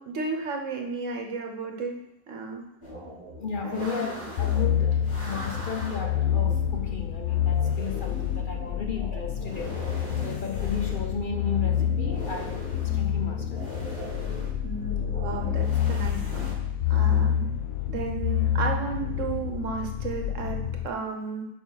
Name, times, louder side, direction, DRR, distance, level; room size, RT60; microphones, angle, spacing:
voice 1, 0.0-2.0 2.3-2.6 3.6-4.2 14.6-16.5 16.9-17.5 17.9-21.5, right 4 dB, 65° right, 2 dB, 1.4 m, -33 dB
sound 1, 2.8-16.5, right 1 dB, 20° left, 2.7 m, -40 dB
voice 2, 3.4-9.8 10.2-13.7, left 6 dB, 50° left, 4 dB, 0.7 m, -35 dB
sound 2, 4.4-20.9, left 9 dB, 90° left, 1.1 m, -28 dB
7.1 x 5.1 x 6.3 m, 0.87 s
omnidirectional pair, 1.4 m